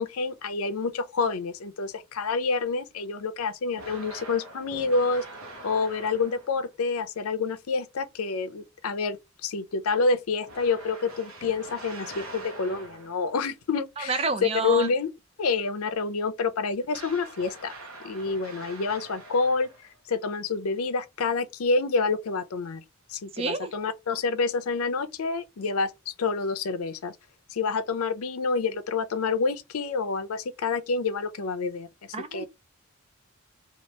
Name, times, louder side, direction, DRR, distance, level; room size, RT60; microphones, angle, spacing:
voice 1, 0.0-5.2 5.6-14.3 14.6-15.1 15.4-17.7 18.0-22.8 23.1-27.2 27.5-31.9 32.3-32.5, left 4 dB, 85° left, 0.5 m, -28 dB
sound 1, 3.7-6.7 10.4-13.3 16.9-20.0, right 2 dB, 75° right, 0.8 m, -44 dB
voice 2, 14.0-14.9 23.3-23.7 32.1-32.5, right 4 dB, 25° right, 0.3 m, -29 dB
2.8 x 2.4 x 3.2 m
head